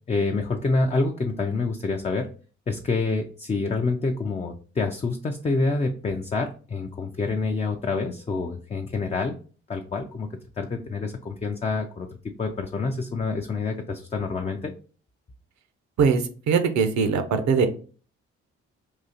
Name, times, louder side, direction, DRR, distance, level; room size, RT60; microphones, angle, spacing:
voice 1, 0.1-2.3 2.7-9.4 9.7-10.3 10.6-12.1 12.4-14.7, left 3 dB, 20° left, 3 dB, 0.4 m, -27 dB
voice 2, 16.0-17.7, right 5 dB, 60° right, 8 dB, 0.6 m, -21 dB
3.8 x 2.4 x 2.8 m, 0.40 s
hypercardioid pair, 50°, 32 cm